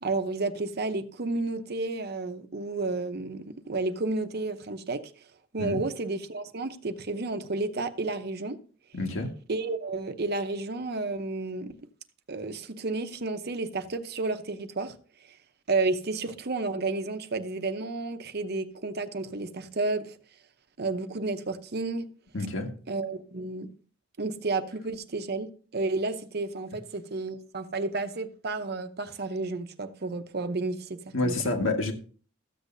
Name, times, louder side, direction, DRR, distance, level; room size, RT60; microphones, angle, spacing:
voice 1, 0.0-5.0 5.5-8.6 9.5-11.7 12.3-14.9 15.7-20.1 20.8-22.1 22.9-23.7 24.2-31.3, right 3 dB, 50° right, 0.8 m, -31 dB
voice 2, 8.9-9.3 22.3-22.7 31.1-31.9, left 2 dB, 70° left, 1.7 m, -28 dB
14.0 x 8.1 x 2.7 m
head